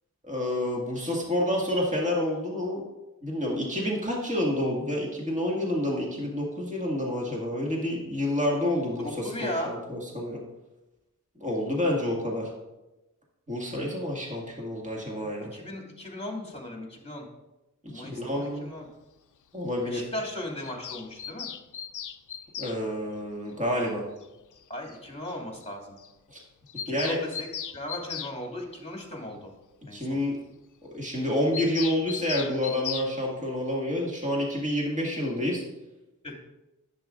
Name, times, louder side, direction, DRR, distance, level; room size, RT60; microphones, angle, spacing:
voice 1, 0.2-2.8 3.2-10.4 11.4-12.5 13.5-15.5 17.9-18.7 19.5-20.1 22.6-24.0 26.3-26.4 26.9-27.2 29.9-30.4 30.9-35.6, left 1 dB, 20° right, -3 dB, 2.1 m, -28 dB
voice 2, 9.0-9.8 15.1-17.2 17.9-18.9 19.8-21.5 24.7-26.0 26.8-27.5 27.7-29.5 29.9-30.2 36.2-36.3, left 1 dB, 20° left, 0 dB, 2.5 m, -37 dB
Bird vocalization bird call bird song, 20.6-22.8 24.2-24.3 24.6-24.7 24.9-25.0 25.3-25.4 25.6-25.7 26.0-26.1 26.4-28.4 31.5-33.1, left 8 dB, 65° left, 0.5 m, -37 dB
10.5 x 8.0 x 2.6 m, 1.0 s
cardioid pair, 50°, 32 cm